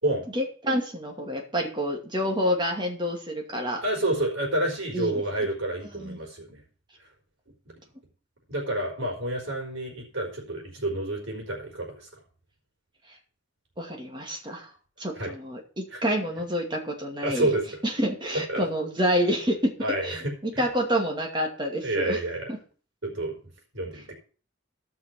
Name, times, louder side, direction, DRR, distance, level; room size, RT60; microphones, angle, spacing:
voice 1, 0.3-3.8 4.9-5.2 5.9-6.2 13.1-13.2 13.8-14.7 15.0-17.5 17.8-19.7 20.0-22.2 22.5-22.6, equal, 25° right, 1 dB, 2.3 m, -28 dB
voice 2, 3.8-6.6 8.5-12.2 15.1-15.3 15.9-16.0 17.2-17.6 18.5-18.7 19.8-20.6 21.8-22.5 23.0-23.3 23.7-24.1, right 1 dB, 90° right, -2 dB, 4.2 m, -29 dB
14.0 x 6.1 x 5.8 m, 0.40 s
head